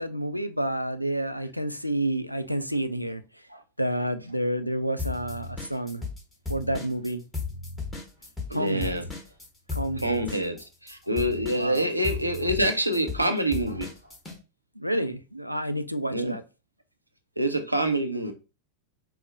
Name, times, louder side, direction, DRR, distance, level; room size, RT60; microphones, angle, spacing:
voice 1, 0.0-3.4 3.8-6.0 6.5-7.2 8.5-8.9 9.7-10.2 11.5-11.9 14.8-16.4, right 1 dB, 90° left, 0.3 m, -29 dB
sound 1, 5.0-6.2 6.5-14.4, left 4 dB, 10° left, 1.2 m, -35 dB
voice 2, 8.5-9.0 10.0-13.9 16.1-16.3 17.4-18.3, right 1 dB, 85° right, 0.5 m, -26 dB
4.6 x 2.0 x 2.6 m
figure-of-eight pair, 90°, 0 cm